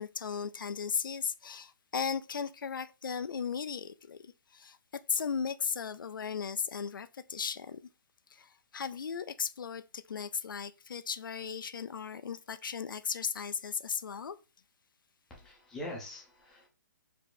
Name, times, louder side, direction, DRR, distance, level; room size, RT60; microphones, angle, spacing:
voice 1, 0.0-4.8 5.1-7.8 8.3-14.4, left 6 dB, 80° left, 0.5 m, -36 dB
voice 2, 15.3-16.7, left 1 dB, 5° left, 0.7 m, -43 dB
4.7 x 2.8 x 3.8 m
hypercardioid pair, 180°, 11 cm